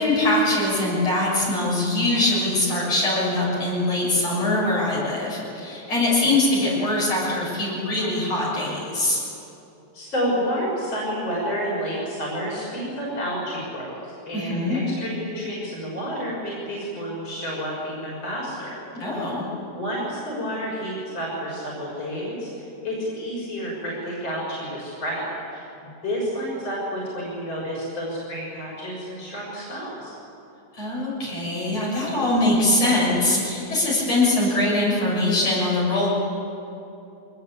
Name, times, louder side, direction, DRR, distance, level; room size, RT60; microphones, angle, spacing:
voice 1, 0.0-9.2 14.3-14.8 18.9-19.4 30.8-36.1, left 2 dB, 55° left, -5 dB, 8.2 m, -22 dB
voice 2, 9.9-18.8 19.7-30.1, equal, 40° left, -5 dB, 7.2 m, -30 dB
24.0 x 20.5 x 8.4 m, 2.9 s
omnidirectional pair, 3.4 m